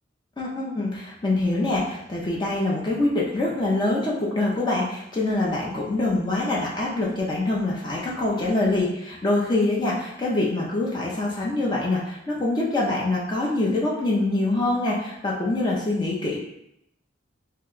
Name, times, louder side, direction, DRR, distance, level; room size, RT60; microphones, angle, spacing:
voice 1, 0.4-16.4, left 2 dB, 25° left, -4 dB, 0.4 m, -25 dB
2.7 x 2.1 x 3.7 m, 0.82 s
head